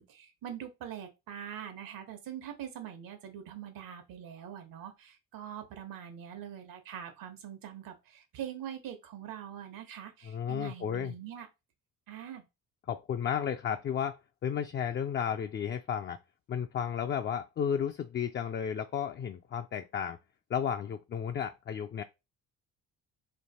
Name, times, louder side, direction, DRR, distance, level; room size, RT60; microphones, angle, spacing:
voice 1, 0.0-11.5 12.1-12.5, right 9 dB, 75° right, 1.2 m, -43 dB
voice 2, 10.3-11.1 12.9-16.2 16.5-20.2 20.5-22.0, left 8 dB, 35° left, 0.4 m, -33 dB
3.2 x 2.9 x 4.2 m
cardioid pair, 95°, 34 cm